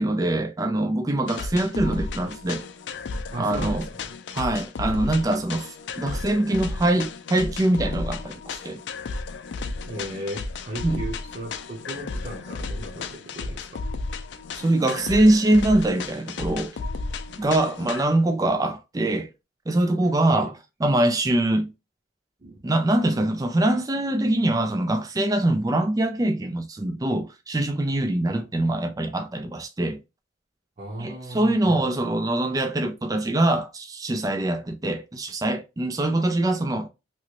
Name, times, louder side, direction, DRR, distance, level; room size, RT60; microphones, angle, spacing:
voice 1, 0.0-2.6 3.4-3.9 4.3-8.8 10.8-11.0 14.6-16.7 17.4-19.3 19.7-20.5 20.8-21.7 22.6-30.0 31.0-36.9, right 1 dB, 20° right, 0.4 m, -23 dB
sound 1, 1.3-18.0, left 3 dB, 65° left, 0.4 m, -33 dB
voice 2, 3.3-4.1 9.8-13.8 20.3-20.5 22.4-22.7 28.3-28.4 30.8-32.1, right 1 dB, 40° right, 0.9 m, -36 dB
3.0 x 2.7 x 2.9 m
head